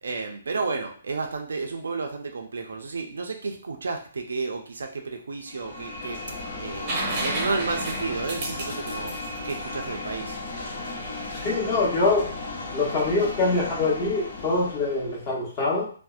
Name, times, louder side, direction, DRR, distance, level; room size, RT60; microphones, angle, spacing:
voice 1, 0.0-6.2 6.6-9.1 9.4-10.4, right 4 dB, 85° right, 3 dB, 0.4 m, -32 dB
sound 1, 5.4-15.3, left 2 dB, 60° left, 0.8 m, -35 dB
sound 2, 6.9-10.6 12.5-12.6, right 2 dB, 35° right, 0.6 m, -32 dB
voice 2, 11.3-12.3 12.7-15.9, left 3 dB, 25° left, -4 dB, 0.9 m, -24 dB
2.6 x 2.0 x 2.3 m, 0.43 s
hypercardioid pair, 160°, 0 cm